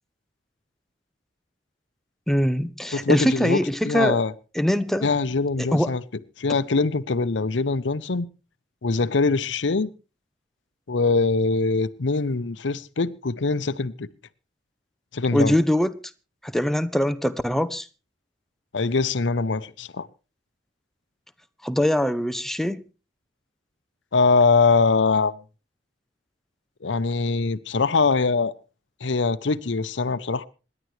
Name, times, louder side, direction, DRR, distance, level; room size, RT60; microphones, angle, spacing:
voice 1, 2.3-4.2 4.6-5.1 5.6-5.9 15.3-15.9 16.4-17.9 21.6-22.8, equal, ahead, 0.7 m, -22 dB
voice 2, 2.9-4.3 5.0-6.0 6.4-8.3 8.8-9.9 10.9-14.1 15.1-15.6 18.7-20.1 24.1-25.4 26.8-28.5 29.0-30.5, left 4 dB, 85° left, 0.7 m, -23 dB
26.5 x 11.0 x 3.2 m
head